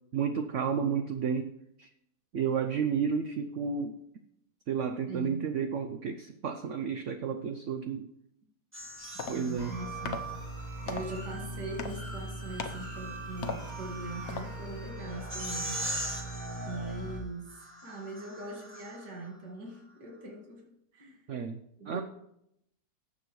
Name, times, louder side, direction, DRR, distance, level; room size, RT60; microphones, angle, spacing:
voice 1, 0.1-1.5 1.8-1.9 2.3-4.0 4.7-8.1 9.3-9.7 21.3-21.6 21.9-22.0, right 6 dB, 60° right, 7 dB, 0.8 m, -31 dB
voice 2, 5.1-5.5 9.2-10.2 10.8-15.8 16.7-17.5 17.8-20.6 20.9-21.2 21.8-22.0, right 2 dB, 80° right, 0 dB, 2.4 m, -41 dB
sound 1, 8.7-10.7 12.1-19.3, right 1 dB, 10° right, 1.3 m, -42 dB
sound 2, 8.8-14.9, left 4 dB, 55° left, 0.9 m, -42 dB
sound 3, 9.6-17.2, right 1 dB, 25° right, 2.5 m, -40 dB
19.0 x 7.5 x 3.2 m, 0.79 s
omnidirectional pair, 1.8 m